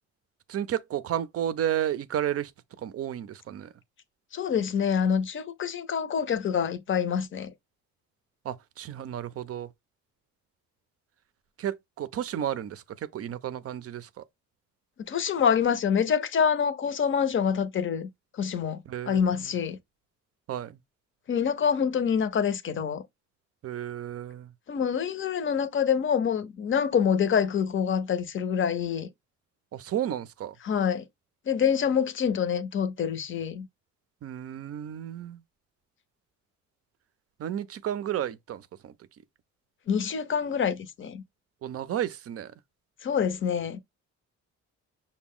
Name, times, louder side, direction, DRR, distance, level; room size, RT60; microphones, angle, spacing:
voice 1, 0.5-2.5 2.8-3.7 8.5-9.7 11.6-12.8 13.1-14.2 18.9-19.6 20.5-20.8 23.6-24.5 29.7-30.5 34.2-35.4 37.4-38.9 41.6-42.5, right 11 dB, 50° right, 0.5 m, -32 dB
voice 2, 4.3-7.5 15.1-18.1 18.4-18.8 19.1-19.8 21.3-23.0 24.7-29.1 30.6-31.0 31.5-33.7 39.9-41.2 43.0-43.8, left 7 dB, 40° left, 0.6 m, -26 dB
6.0 x 2.2 x 3.6 m
cardioid pair, 90°, 30 cm